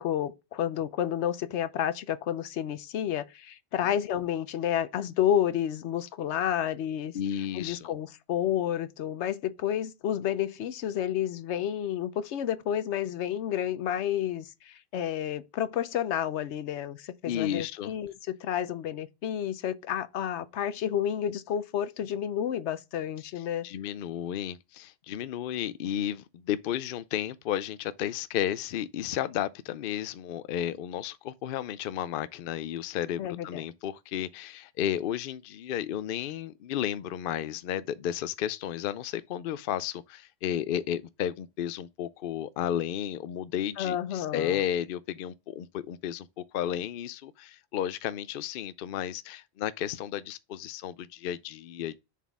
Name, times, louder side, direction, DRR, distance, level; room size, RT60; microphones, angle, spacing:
voice 1, 0.0-7.1 7.5-23.7 33.2-33.6 43.8-44.6, left 10 dB, 85° left, 0.9 m, -30 dB
voice 2, 7.1-7.9 17.2-17.9 23.6-52.0, left 10 dB, 60° left, 0.6 m, -33 dB
7.2 x 4.2 x 3.5 m
omnidirectional pair, 1.1 m